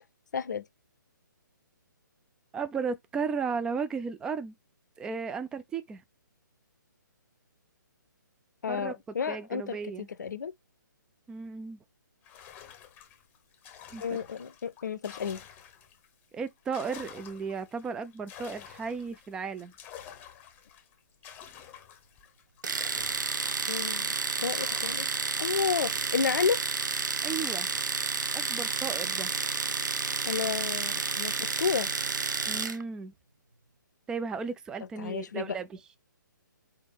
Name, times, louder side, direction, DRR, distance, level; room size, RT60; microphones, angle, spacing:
voice 1, 0.3-0.6 8.6-10.5 14.0-15.4 23.7-26.6 30.3-31.9 35.0-35.6, left 6 dB, 60° left, 0.6 m, -31 dB
voice 2, 2.5-4.5 5.0-6.0 8.7-8.9 9.3-10.1 11.3-11.8 13.9-14.2 16.3-19.7 27.2-27.8 28.3-29.3 32.5-33.1 34.1-35.7, right 5 dB, 5° right, 0.3 m, -35 dB
sound 1, 12.2-16.1 16.5-24.0 24.4-26.3, left 9 dB, 15° left, 0.8 m, -50 dB
Domestic sounds home sounds, 22.6-32.8, right 4 dB, 70° right, 0.7 m, -31 dB
4.3 x 3.4 x 3.5 m
figure-of-eight pair, 135°, 11 cm